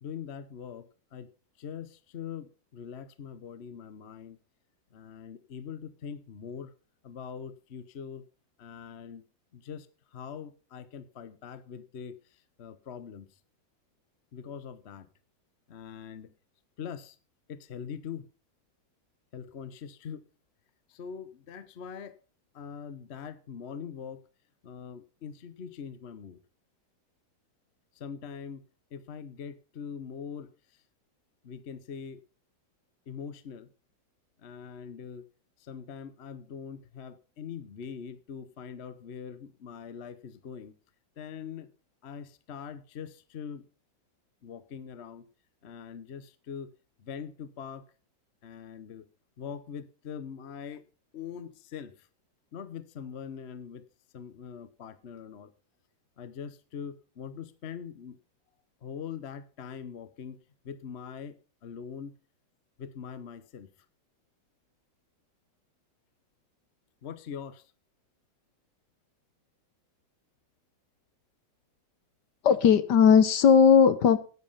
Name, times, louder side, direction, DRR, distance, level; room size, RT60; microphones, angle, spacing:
voice 1, 0.0-1.3 1.6-4.4 4.9-6.7 7.0-8.2 8.6-9.2 9.5-9.9 10.1-12.1 12.6-13.3 14.3-15.1 15.7-16.3 16.8-17.2 17.5-18.2 19.3-20.2 20.9-22.2 22.5-24.2 24.6-26.4 27.9-28.6 28.9-30.5 31.4-32.2 33.1-33.7 34.4-35.2 35.6-40.7 41.2-41.7 42.0-43.7 44.4-45.2 45.6-46.7 47.0-47.9 48.4-49.0 49.4-50.8 51.1-52.1 52.5-53.8 54.1-55.5 56.2-58.2 58.8-60.4 60.6-61.4 61.6-62.1 62.8-63.7 67.0-67.7, left 7 dB, 45° left, 0.9 m, -42 dB
voice 2, 72.4-74.2, left 7 dB, 65° left, 1.4 m, -18 dB
10.0 x 9.7 x 5.6 m
omnidirectional pair, 2.2 m